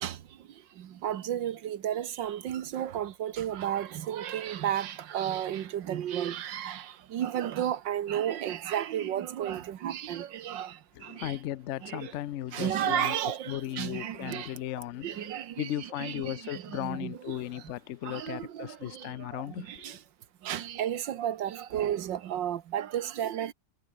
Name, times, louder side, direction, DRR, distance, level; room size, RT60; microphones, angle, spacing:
voice 1, 1.0-6.8 7.1-10.7 11.0-11.3 11.8-12.1 12.5-14.5 15.0-17.4 18.1-18.7 19.6-19.9 20.5-23.5, right 10 dB, 85° right, 1.8 m, -32 dB
voice 2, 10.9-13.1 13.5-20.0, left 13 dB, 75° left, 0.6 m, -36 dB
omnidirectional pair, 1.9 m